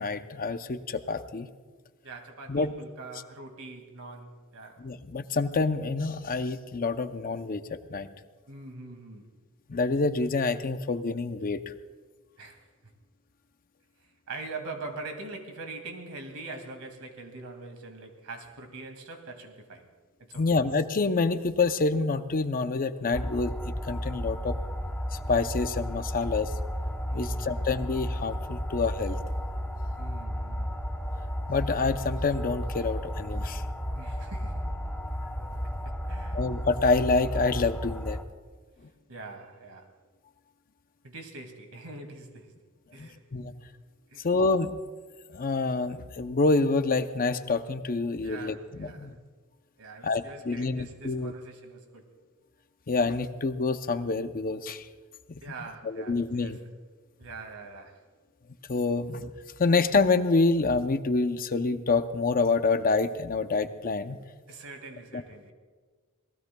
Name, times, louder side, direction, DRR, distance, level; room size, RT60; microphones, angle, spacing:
voice 1, 0.0-1.5 2.5-2.7 4.8-8.1 9.7-11.6 20.4-23.6 23.8-24.6 25.1-26.5 27.1-29.2 31.5-33.6 35.4-35.6 36.3-38.2 43.0-43.5 44.2-44.7 45.3-49.1 50.0-51.3 52.9-54.9 55.3-55.4 55.8-56.6 58.7-59.3 59.6-64.2 65.1-65.2, left 3 dB, 40° left, 9 dB, 0.6 m, -27 dB
voice 2, 2.0-4.8 8.5-9.3 12.4-12.6 14.3-19.9 20.2-20.4 27.1-27.7 30.0-30.8 33.9-34.8 35.8-36.5 39.1-39.9 41.0-42.5 42.9-43.2 44.1-44.3 48.2-49.1 49.8-52.0 55.4-56.6 57.2-58.0 64.5-65.5, right 3 dB, 70° right, 5 dB, 2.2 m, -43 dB
sound 1, 23.1-38.2, equal, 5° left, 0.8 m, -33 dB
26.5 x 19.0 x 2.3 m, 1.4 s
head